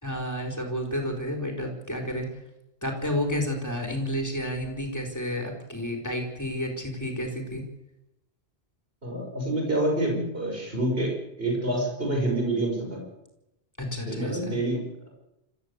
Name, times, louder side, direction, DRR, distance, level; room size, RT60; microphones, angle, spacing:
voice 1, 0.0-2.3 2.8-7.6 13.8-14.6, left 1 dB, 15° left, 2 dB, 4.4 m, -31 dB
voice 2, 9.0-13.0 14.1-15.1, right 1 dB, 60° right, 0 dB, 6.2 m, -27 dB
26.5 x 15.0 x 8.2 m, 0.89 s
omnidirectional pair, 1.1 m